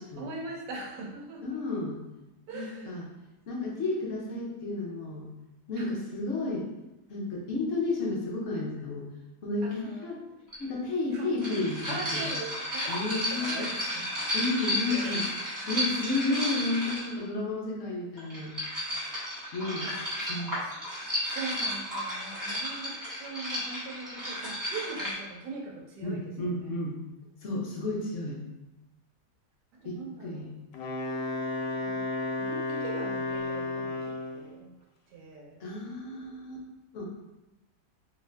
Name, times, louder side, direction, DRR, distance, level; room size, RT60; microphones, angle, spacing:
voice 1, 0.2-1.6 2.5-3.0 5.7-5.9 9.6-10.2 11.1-11.3 11.9-14.2 14.9-15.3 19.6-20.8 21.3-26.7 29.7-30.5 31.7-32.1 32.4-34.7 35.1-35.6, right 3 dB, 80° right, -1 dB, 1.2 m, -41 dB
voice 2, 1.4-2.0 2.5-3.1 3.5-5.3 5.7-6.7 7.1-9.1 9.4-10.2 10.6-12.2 12.9-13.6 14.3-15.2 15.7-18.5 19.5-19.8 20.3-20.6 26.0-26.9 27.4-28.4 29.8-30.5 35.6-36.6 36.9-37.1, left 2 dB, 55° left, -3 dB, 0.9 m, -32 dB
sound 1, 10.5-10.6 11.4-17.2 18.2-25.1, equal, 15° right, 0.8 m, -33 dB
Wind instrument woodwind instrument, 30.7-34.5, left 2 dB, 85° left, 1.2 m, -32 dB
3.0 x 2.6 x 3.2 m, 1.0 s
omnidirectional pair, 1.8 m